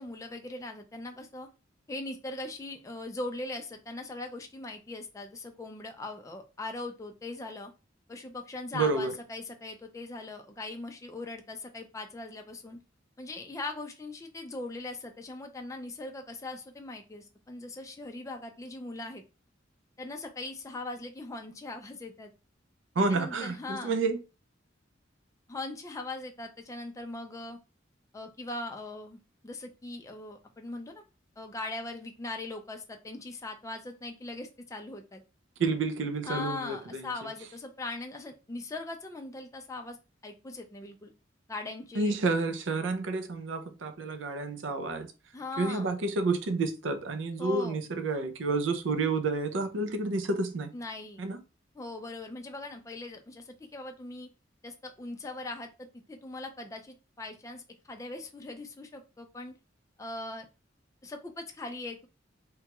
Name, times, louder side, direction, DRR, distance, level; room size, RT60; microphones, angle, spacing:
voice 1, 0.0-1.5 1.9-7.7 8.1-12.8 13.2-19.2 20.0-22.3 23.1-24.0 25.5-27.6 28.1-31.0 31.4-35.2 36.2-40.0 40.2-41.1 41.5-42.2 45.3-45.9 47.4-47.8 50.7-51.2 51.7-54.3 54.6-59.5 60.0-60.5 61.0-62.1, left 2 dB, 15° left, 0.4 m, -40 dB
voice 2, 8.7-9.1 23.0-24.2 35.6-37.1 42.0-45.1 45.6-50.7 51.2-51.4, right 3 dB, 80° right, 0.5 m, -30 dB
2.9 x 2.3 x 2.9 m
head